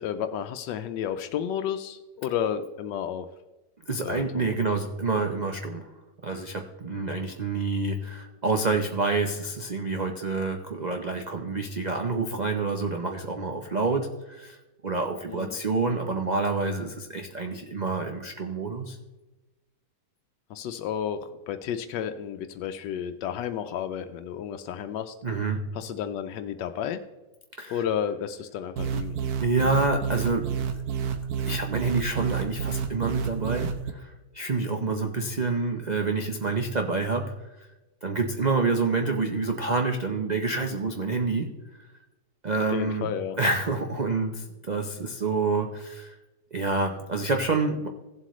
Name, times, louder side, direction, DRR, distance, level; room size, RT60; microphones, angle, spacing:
voice 1, 0.0-3.3 4.0-4.6 15.3-15.6 20.5-25.1 25.7-27.0 27.7-29.2 34.8-35.1 42.7-43.4, left 9 dB, 90° left, 8 dB, 1.2 m, -32 dB
voice 2, 3.9-5.9 6.2-14.6 14.8-19.0 25.2-25.6 27.6-27.8 29.4-30.5 30.7-30.8 31.5-37.2 37.6-37.7 38.0-41.5 41.8-41.9 42.4-43.1 43.4-46.2 46.5-47.9, right 3 dB, 80° right, 4 dB, 0.4 m, -28 dB
sound 1, 28.8-33.9, right 7 dB, 65° right, 1.2 m, -30 dB
16.0 x 7.7 x 3.1 m, 1.1 s
omnidirectional pair, 1.9 m